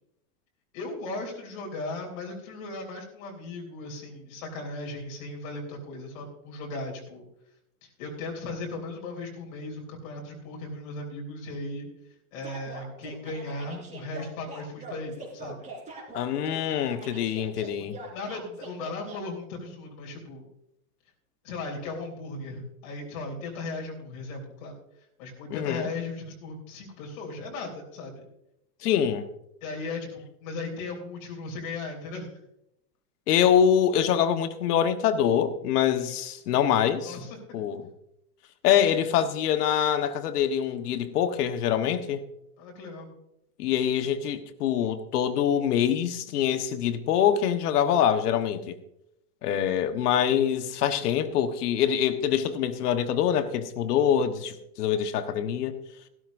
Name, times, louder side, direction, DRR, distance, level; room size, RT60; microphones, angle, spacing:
voice 1, 0.7-7.2 7.8-11.9 12.3-15.7 18.1-20.4 21.4-24.7 25.2-28.3 29.6-32.3 37.0-37.4 42.6-43.1, left 2 dB, 60° left, 3.5 m, -37 dB
sound 1, 12.4-19.2, right 3 dB, 15° right, 3.4 m, -42 dB
voice 2, 16.1-18.0 25.5-25.9 28.8-29.2 33.3-37.1 37.5-37.8 38.6-42.2 43.6-48.8 49.4-55.8, left 9 dB, 80° left, 1.4 m, -24 dB
16.0 x 12.5 x 2.6 m
supercardioid pair, 150°, 46 cm